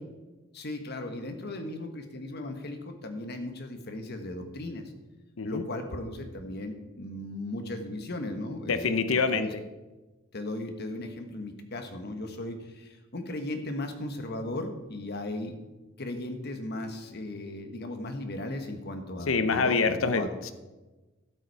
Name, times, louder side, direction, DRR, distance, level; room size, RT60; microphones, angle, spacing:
voice 1, 0.5-4.9 5.4-8.9 9.3-9.5 10.3-15.6 16.0-20.3, left 1 dB, 55° left, 6 dB, 1.3 m, -36 dB
voice 2, 8.7-9.5 19.3-20.5, left 4 dB, 80° left, 10 dB, 0.7 m, -26 dB
12.5 x 8.1 x 4.7 m, 1.2 s
head